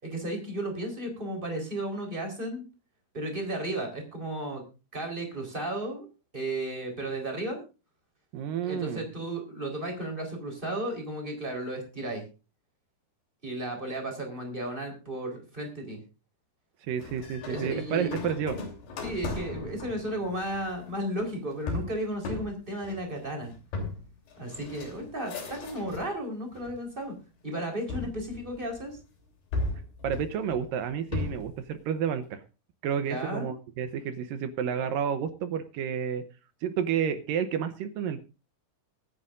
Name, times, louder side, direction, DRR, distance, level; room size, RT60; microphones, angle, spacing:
voice 1, 0.0-2.6 3.1-4.6 4.9-6.1 6.3-7.6 8.6-12.2 13.4-16.0 17.5-18.2 19.0-23.5 24.4-27.1 27.4-29.0 33.1-33.5, right 1 dB, 10° right, 2 dB, 3.9 m, -34 dB
voice 2, 8.3-9.1 16.8-18.6 30.0-32.4 32.8-36.2 36.6-38.2, right 8 dB, 75° right, 10 dB, 2.2 m, -30 dB
sound 1, 17.0-26.1 26.5-27.2 27.9-29.0 29.5-31.6, left 3 dB, 75° left, 5.0 m, -37 dB
23.0 x 9.6 x 2.6 m, 0.31 s
omnidirectional pair, 4.7 m